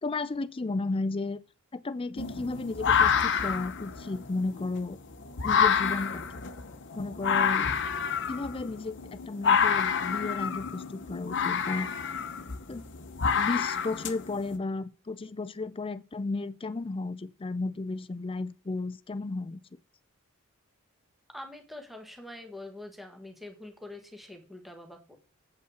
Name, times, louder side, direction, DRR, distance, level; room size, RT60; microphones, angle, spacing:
voice 1, 0.0-1.4 1.7-5.0 5.4-6.4 6.9-7.7 8.3-11.9 12.7-12.8 13.3-19.6, left 3 dB, 25° left, 0.5 m, -34 dB
sound 1, 2.2-14.5, left 7 dB, 60° left, 0.9 m, -28 dB
voice 2, 21.3-25.2, left 1 dB, ahead, 1.4 m, -44 dB
8.0 x 5.5 x 6.2 m
head